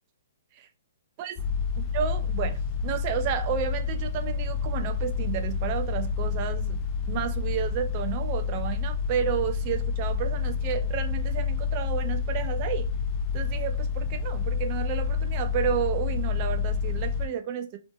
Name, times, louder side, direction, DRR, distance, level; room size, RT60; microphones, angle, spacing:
sound 1, 1.4-17.3, left 6 dB, 25° left, 0.3 m, -29 dB
voice 1, 1.8-6.8 7.1-12.9 13.3-17.8, right 9 dB, 35° right, 0.4 m, -31 dB
2.8 x 2.1 x 2.6 m
hypercardioid pair, 145°, 0 cm